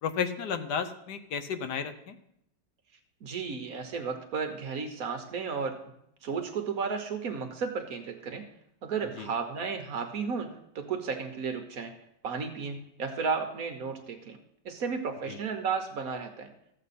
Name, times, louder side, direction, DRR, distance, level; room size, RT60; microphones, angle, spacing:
voice 1, 0.0-2.2 9.2-9.3 15.3-15.4, left 7 dB, 70° left, 10 dB, 1.2 m, -33 dB
voice 2, 3.2-5.8 6.2-8.5 8.8-11.9 12.2-14.4 14.6-16.5, right 5 dB, 55° right, 6 dB, 1.2 m, -33 dB
13.5 x 7.9 x 4.2 m, 0.76 s
omnidirectional pair, 2.0 m